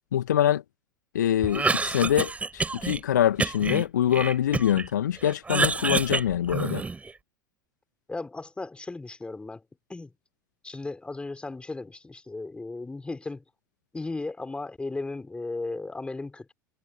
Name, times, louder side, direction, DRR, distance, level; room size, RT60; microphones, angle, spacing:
voice 1, 0.1-0.6 1.1-6.8, left 10 dB, 65° left, 2.0 m, -24 dB
Cough, 1.4-3.0 3.4-4.9 5.2-7.1, right 3 dB, 15° right, 5.2 m, -28 dB
voice 2, 8.1-9.6 9.9-10.1 10.6-13.4 13.9-16.5, left 3 dB, 10° left, 5.7 m, -36 dB
figure-of-eight pair, 80°, 10 cm